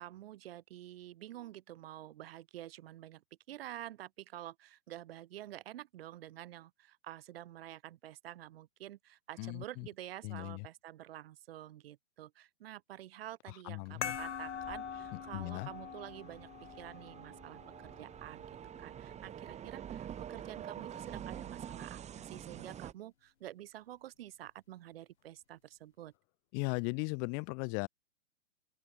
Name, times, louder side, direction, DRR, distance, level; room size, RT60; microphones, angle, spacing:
voice 1, 0.0-17.6 17.9-26.1, right 13 dB, 45° right, 7.8 m, -49 dB
voice 2, 9.4-9.9 10.2-10.6 13.7-14.2 15.3-15.7 26.5-27.9, left 40 dB or more, 30° left, 2.3 m, -37 dB
sound 1, 13.9-22.9, right 9 dB, 15° right, 4.3 m, -47 dB
sound 2, 14.0-19.1, left 8 dB, 60° left, 2.5 m, -44 dB
open air
figure-of-eight pair, 115°, 39 cm